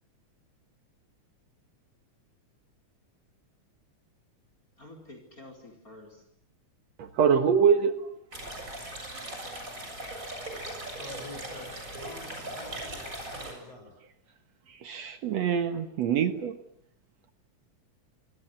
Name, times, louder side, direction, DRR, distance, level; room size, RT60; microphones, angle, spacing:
voice 1, 4.8-6.2, left 2 dB, 25° left, 5 dB, 4.9 m, -49 dB
voice 2, 7.0-8.1 9.4-9.5 10.0-10.4 14.7-16.6, right 7 dB, 65° right, 9 dB, 2.5 m, -25 dB
sound 1, 8.3-13.5, right 1 dB, 25° right, 7.9 m, -39 dB
voice 3, 10.8-12.3 12.5-13.9, left 3 dB, 55° left, 4 dB, 7.3 m, -47 dB
26.5 x 25.5 x 8.0 m, 0.68 s
omnidirectional pair, 3.4 m